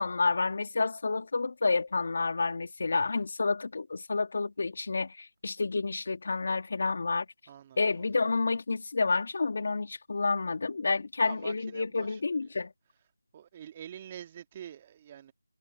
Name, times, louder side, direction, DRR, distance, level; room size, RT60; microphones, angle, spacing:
voice 1, 0.0-7.3 7.8-12.7, left 4 dB, 40° left, 2.0 m, -29 dB
voice 2, 7.5-8.1 8.3-8.4 11.2-12.2 13.3-15.3, right 10 dB, 20° right, 1.9 m, -46 dB
figure-of-eight pair, 165°, 0 cm